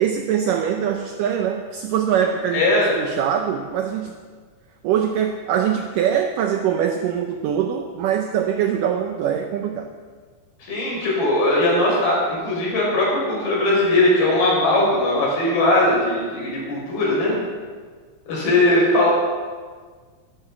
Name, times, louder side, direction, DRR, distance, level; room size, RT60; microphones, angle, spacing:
voice 1, 0.0-2.7 3.0-4.2 4.8-9.9, right 8 dB, 90° right, 5 dB, 1.9 m, -23 dB
voice 2, 2.5-2.9 10.6-17.4 18.3-19.1, left 1 dB, 60° left, -4 dB, 6.9 m, -19 dB
14.0 x 12.5 x 5.9 m, 1.5 s
omnidirectional pair, 4.8 m